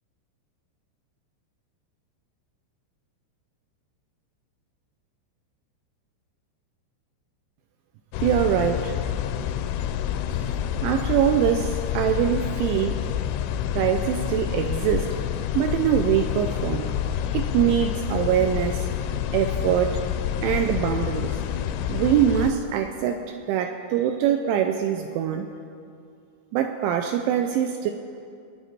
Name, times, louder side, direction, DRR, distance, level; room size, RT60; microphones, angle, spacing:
sound 1, 8.1-22.5, left 10 dB, 85° left, 2.9 m, -28 dB
voice 1, 8.2-8.9 10.8-13.0 13.7-15.1 15.5-16.9 17.3-18.9 19.3-20.0 20.4-21.3 21.9-23.2 23.5-25.5 26.5-27.9, right 9 dB, 85° right, 5 dB, 2.7 m, -23 dB
22.5 x 9.7 x 4.4 m, 2.4 s
omnidirectional pair, 5.8 m